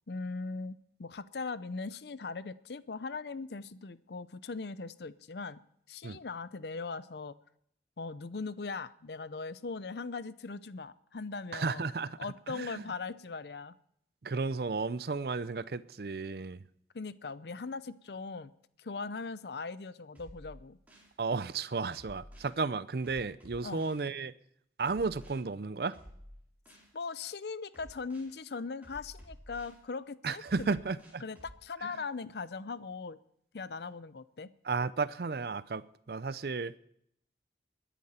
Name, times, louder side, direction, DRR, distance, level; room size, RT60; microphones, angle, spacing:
voice 1, 0.1-5.6 5.9-7.3 8.0-11.9 12.2-13.7 16.9-18.5 18.8-20.8 23.6-23.8 26.9-30.8 31.2-33.2 33.5-34.5, left 4 dB, 70° left, 16 dB, 0.6 m, -40 dB
voice 2, 11.5-12.2 12.5-12.8 14.2-16.7 21.2-24.3 24.8-26.0 30.2-31.2 31.8-32.0 34.6-36.7, right 4 dB, 60° right, 16 dB, 0.5 m, -33 dB
sound 1, 20.1-21.1 21.9-22.5 23.0-24.0 24.8-25.3 25.9-26.9 27.7-28.3 28.8-29.8 30.4-31.6, equal, 10° right, 4.7 m, -52 dB
21.5 x 10.0 x 4.3 m, 0.71 s
head